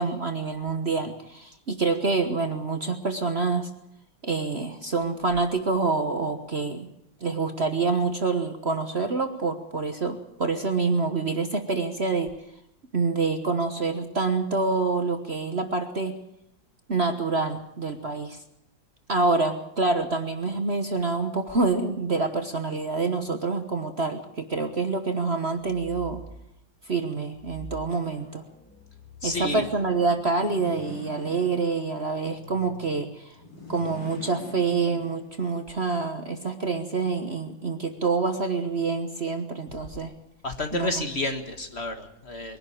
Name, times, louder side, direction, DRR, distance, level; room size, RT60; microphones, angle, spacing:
voice 1, 0.0-3.7 4.2-6.9 7.2-12.3 12.9-16.1 16.9-18.4 19.1-26.2 26.8-28.4 29.2-33.3 33.7-40.1 40.7-41.0, right 4 dB, 35° right, 7 dB, 1.3 m, -27 dB
sound 1, 25.5-26.5 27.3-33.3, equal, 5° left, 3.3 m, -47 dB
voice 2, 29.2-29.6 40.4-42.6, left 2 dB, 35° left, 6 dB, 1.8 m, -30 dB
sound 2, 30.3-31.9 33.3-35.5, left 2 dB, 75° left, 5.7 m, -42 dB
22.5 x 12.0 x 10.0 m, 0.77 s
omnidirectional pair, 2.0 m